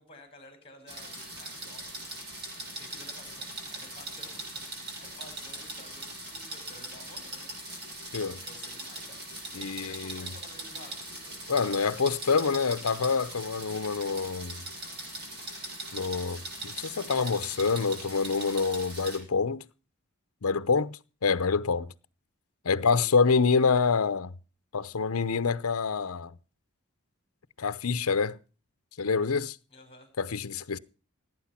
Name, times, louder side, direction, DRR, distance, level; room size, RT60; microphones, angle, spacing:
voice 1, 0.0-2.1 2.6-7.5 8.2-9.2 9.5-11.8 29.7-30.1, left 1 dB, 25° left, 5.0 m, -53 dB
sound 1, 0.9-19.2, right 2 dB, 50° right, 7.7 m, -41 dB
voice 2, 9.5-10.3 11.5-14.6 15.9-19.6 20.4-21.9 22.6-24.3 24.7-26.3 27.6-28.4 29.0-29.6 30.2-30.8, left 5 dB, 85° left, 0.7 m, -27 dB
18.0 x 9.2 x 5.7 m
head